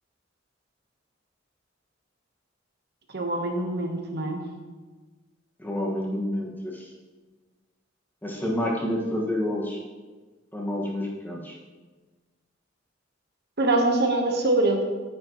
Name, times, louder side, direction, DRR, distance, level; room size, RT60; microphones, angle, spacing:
voice 1, 3.1-4.4 13.6-14.8, right 2 dB, 55° right, 2 dB, 1.1 m, -24 dB
voice 2, 5.6-6.9 8.2-9.8 10.5-11.5, left 1 dB, 10° left, -2 dB, 1.4 m, -29 dB
9.7 x 9.6 x 3.0 m, 1.3 s
head